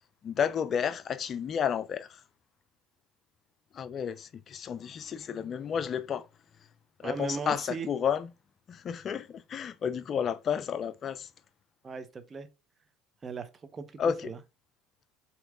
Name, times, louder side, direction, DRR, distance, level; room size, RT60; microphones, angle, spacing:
voice 1, 0.2-2.2 3.7-6.3 7.0-8.3 8.7-11.3 14.0-14.3, left 7 dB, 40° left, 0.3 m, -31 dB
voice 2, 7.0-7.9 11.8-12.5 13.2-14.4, right 5 dB, 30° right, 0.8 m, -38 dB
4.6 x 2.9 x 3.6 m
hypercardioid pair, 70°, 0 cm